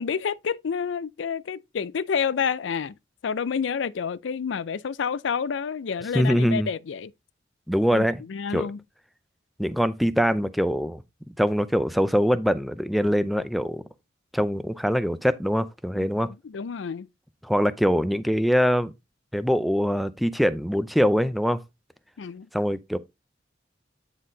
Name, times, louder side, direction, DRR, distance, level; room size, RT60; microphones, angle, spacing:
voice 1, 0.0-2.9 3.2-7.1 7.9-8.8 16.0-16.1 16.4-17.1 22.2-22.5, left 6 dB, 85° left, 0.4 m, -29 dB
voice 2, 6.1-6.7 7.7-8.2 8.5-8.7 9.6-11.0 11.4-13.8 14.3-16.3 17.4-18.9 19.3-21.6 22.5-23.0, equal, ahead, 0.5 m, -23 dB
9.4 x 4.1 x 3.8 m
head